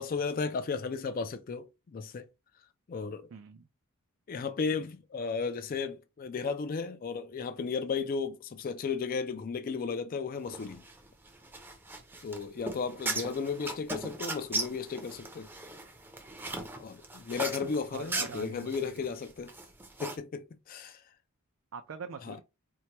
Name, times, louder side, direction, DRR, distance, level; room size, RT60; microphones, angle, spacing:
voice 1, 0.0-2.3 2.9-3.3 4.3-10.8 12.2-15.5 16.8-19.5 20.0-21.0 22.2-22.4, left 5 dB, 40° left, 0.3 m, -34 dB
voice 2, 3.3-3.7 17.9-19.1 21.7-22.4, right 5 dB, 60° right, 0.4 m, -44 dB
sound 1, 10.5-20.2, right 2 dB, 10° right, 0.6 m, -38 dB
4.4 x 2.2 x 2.9 m
head